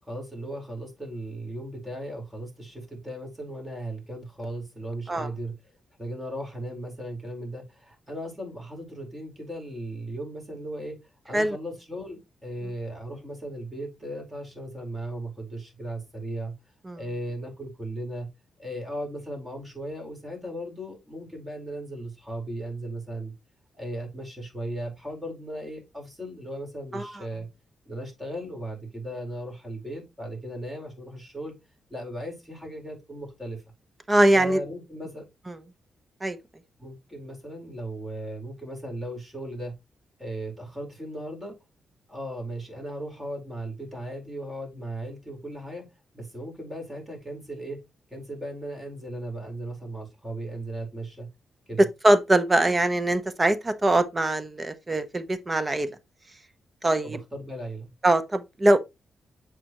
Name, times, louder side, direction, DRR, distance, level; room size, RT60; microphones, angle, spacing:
voice 1, 0.0-5.5 6.0-11.0 11.2-16.5 17.0-18.3 18.6-23.3 23.8-27.5 27.9-31.5 31.9-33.6 34.3-35.2 36.8-39.7 40.2-41.5 42.1-45.8 46.1-47.8 48.1-51.3 51.7-51.8 57.0-57.9, right 1 dB, 10° right, 4.4 m, -37 dB
voice 2, 34.1-34.6 36.2-36.4 51.8-55.9 56.8-57.2 58.0-58.8, right 1 dB, 25° right, 0.9 m, -22 dB
7.7 x 5.0 x 3.0 m
cardioid pair, 75°, 0 cm